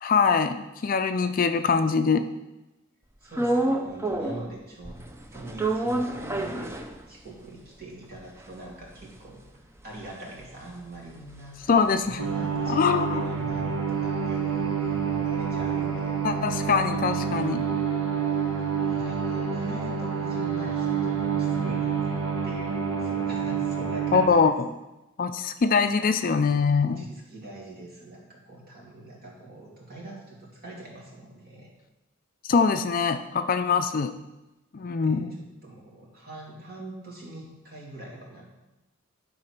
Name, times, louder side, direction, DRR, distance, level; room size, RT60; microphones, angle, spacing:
voice 1, 0.0-2.2 11.7-12.2 12.7-13.2 16.2-17.6 24.1-24.5 25.2-27.1 32.5-34.1 34.7-35.4, left 5 dB, 40° left, 9 dB, 0.4 m, -23 dB
voice 2, 3.2-5.0 5.3-9.4 9.8-11.6 12.0-16.2 18.6-22.2 22.4-24.5 26.8-31.7 34.8-38.5, right 2 dB, 45° right, -3 dB, 2.6 m, -43 dB
sound 1, 3.3-4.5 4.8-7.4 7.8-7.9 8.1-12.6 12.9-17.0, right 2 dB, 10° right, 0.6 m, -31 dB
sound 2, 12.2-24.3, right 6 dB, 80° right, 1.4 m, -28 dB
11.5 x 4.2 x 5.9 m, 0.99 s
head